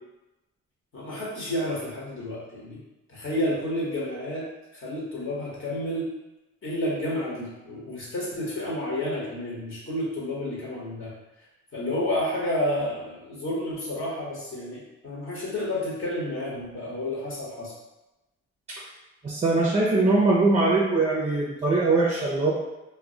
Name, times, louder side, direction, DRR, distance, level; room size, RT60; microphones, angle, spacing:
voice 1, 0.9-2.8 3.1-4.5 4.7-6.1 6.6-11.1 11.7-17.7, left 1 dB, 45° left, -5 dB, 1.0 m, -30 dB
voice 2, 19.2-22.5, right 3 dB, 20° right, -4 dB, 0.5 m, -22 dB
2.2 x 2.1 x 3.7 m, 1.0 s
cardioid pair, 90°, 30 cm